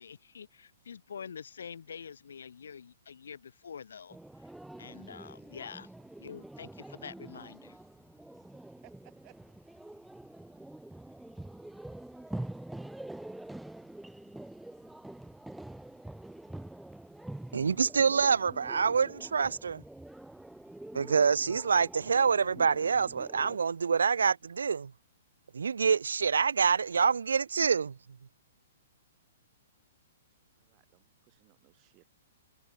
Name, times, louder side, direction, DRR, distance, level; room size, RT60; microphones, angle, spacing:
voice 1, 0.0-4.2 4.8-5.9 6.2-7.8, left 7 dB, 75° left, 0.7 m, -46 dB
sound 1, 4.1-23.6, right 1 dB, 5° right, 0.9 m, -46 dB
voice 2, 8.5-9.3 30.6-32.1, right 24 dB, 35° right, 7.4 m, -62 dB
voice 3, 17.5-19.8 20.9-24.9 25.5-28.0, right 6 dB, 80° right, 0.4 m, -26 dB
hypercardioid pair, 125°, 0 cm